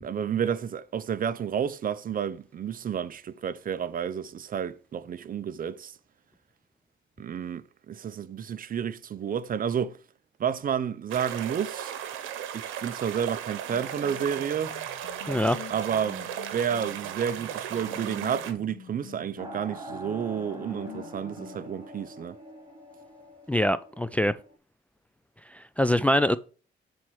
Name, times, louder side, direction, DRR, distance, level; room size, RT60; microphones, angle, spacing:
voice 1, 0.0-5.9 7.2-10.0 10.4-11.9 12.5-14.8 15.7-22.4, right 8 dB, 45° right, 0.6 m, -31 dB
sound 1, 11.1-18.5, right 10 dB, 90° right, 0.9 m, -36 dB
sound 2, 13.7-21.7, left 8 dB, 80° left, 1.0 m, -48 dB
voice 2, 15.3-15.6 23.5-24.3 25.5-26.4, equal, 5° left, 0.3 m, -24 dB
sound 3, 19.4-24.6, right 1 dB, 25° right, 2.8 m, -44 dB
7.6 x 4.3 x 4.6 m
cardioid pair, 90°, 20 cm